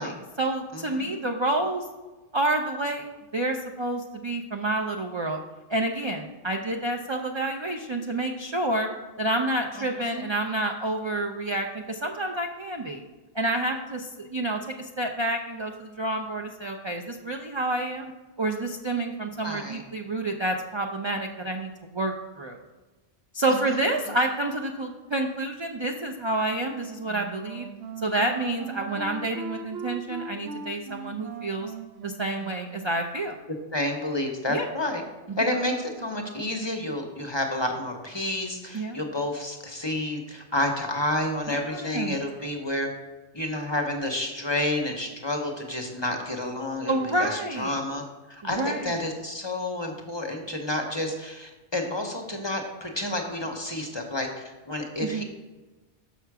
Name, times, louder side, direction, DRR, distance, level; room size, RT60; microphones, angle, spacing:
voice 1, 0.0-1.9 2.3-5.4 5.7-8.9 9.2-13.0 13.3-18.1 18.4-22.6 23.3-27.7 28.0-31.7 32.0-33.3 34.5-34.7 35.3-35.4 38.7-39.0 41.5-42.2 46.9-47.8 48.5-49.0 55.0-55.2, right 2 dB, 40° right, 2 dB, 0.4 m, -29 dB
voice 2, 0.7-1.1 9.8-10.3 19.4-19.8 23.5-23.8 33.7-35.0 35.4-42.9 43.3-55.2, left 1 dB, 25° left, 3 dB, 0.8 m, -30 dB
Wind instrument woodwind instrument, 27.1-32.9, right 4 dB, 70° right, 0.9 m, -39 dB
6.9 x 5.8 x 4.7 m, 1.2 s
omnidirectional pair, 1.2 m